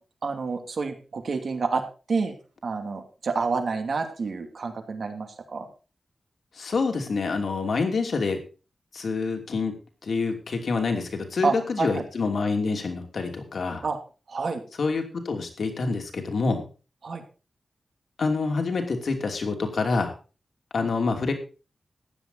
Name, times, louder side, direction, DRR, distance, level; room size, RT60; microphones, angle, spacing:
voice 1, 0.2-1.8 2.1-2.3 2.6-5.7 11.4-12.0 13.8-14.0 14.3-14.6 17.0-17.2, right 4 dB, 60° right, 5 dB, 2.6 m, -28 dB
voice 2, 6.6-8.4 8.9-9.7 10.0-13.8 14.8-16.6 18.2-20.1 20.7-21.3, left 4 dB, 65° left, 4 dB, 2.9 m, -27 dB
15.0 x 10.5 x 4.2 m, 0.34 s
wide cardioid pair, 165°, 0 cm